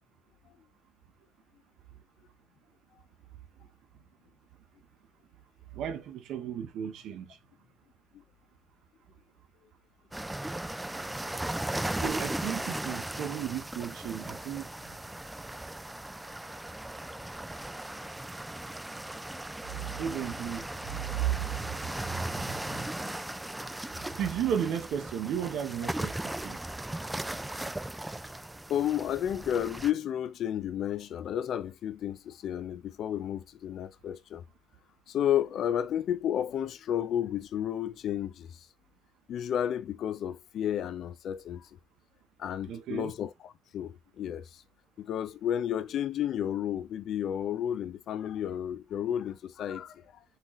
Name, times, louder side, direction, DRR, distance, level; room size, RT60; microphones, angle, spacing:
voice 1, 5.7-7.4 12.0-14.7 19.8-21.7 22.0-22.9 24.2-26.6 42.7-43.1, right 9 dB, 85° right, 0.7 m, -34 dB
sound 1, 10.1-29.9, right 1 dB, 10° right, 0.4 m, -37 dB
voice 2, 28.7-34.4 35.1-38.7 39.3-41.7 42.4-44.6 45.0-50.2, left 10 dB, 75° left, 0.4 m, -32 dB
4.1 x 3.9 x 3.0 m
cardioid pair, 90°, 0 cm